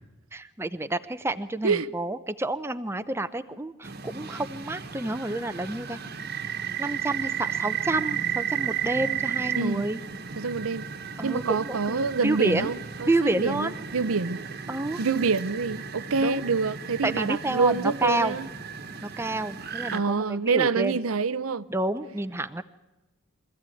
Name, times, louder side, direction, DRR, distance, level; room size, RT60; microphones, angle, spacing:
voice 1, 0.3-6.0 6.8-10.0 11.2-12.7 13.1-13.7 14.7-15.0 16.2-16.4 17.0-18.3 19.0-21.0 21.7-22.6, right 2 dB, 10° right, 0.6 m, -29 dB
sound 1, 3.8-20.0, right 8 dB, 45° right, 1.3 m, -34 dB
voice 2, 10.4-10.9 11.2-14.4 15.0-18.5 19.9-21.6, right 4 dB, 85° right, 0.7 m, -26 dB
24.0 x 14.5 x 9.2 m
head